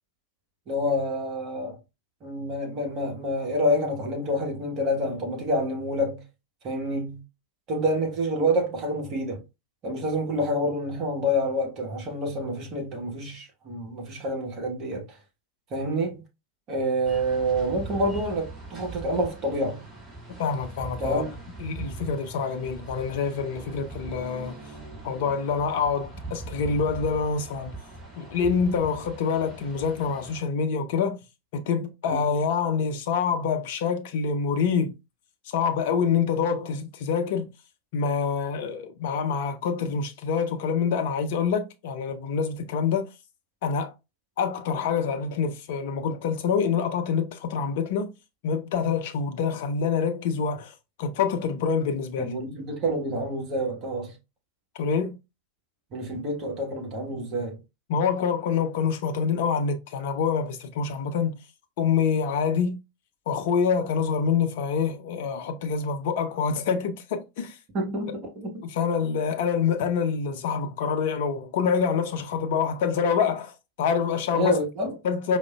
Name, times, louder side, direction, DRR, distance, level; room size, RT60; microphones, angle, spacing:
voice 1, 0.7-1.8 2.2-6.2 6.6-7.2 7.7-9.4 9.8-15.2 15.7-16.2 16.7-19.8 21.0-21.3 32.1-32.2 52.2-54.1 55.9-57.6 67.7-68.5 74.3-74.9, equal, 35° right, 1.1 m, -27 dB
sound 1, 17.0-30.4, right 2 dB, 10° right, 2.0 m, -41 dB
voice 2, 20.4-21.2 21.6-24.5 25.0-27.7 28.2-31.2 31.5-34.9 35.5-37.5 37.9-43.1 43.6-43.9 44.4-48.1 48.4-52.3 54.8-55.2 57.9-61.4 61.8-62.8 63.3-67.6 68.6-74.6 75.0-75.4, left 6 dB, 50° left, 0.6 m, -26 dB
4.9 x 2.1 x 2.2 m
figure-of-eight pair, 90°, 0 cm